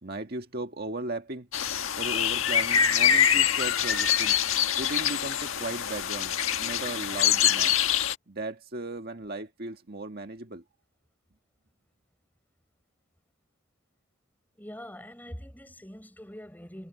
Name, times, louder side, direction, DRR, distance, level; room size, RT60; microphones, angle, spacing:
voice 1, 0.0-4.4 4.8-7.8 8.3-10.6, right 2 dB, 45° right, 1.9 m, -37 dB
sound 1, 1.5-8.1, left 9 dB, 70° left, 1.6 m, -25 dB
voice 2, 14.6-16.9, equal, 10° left, 4.2 m, -43 dB
head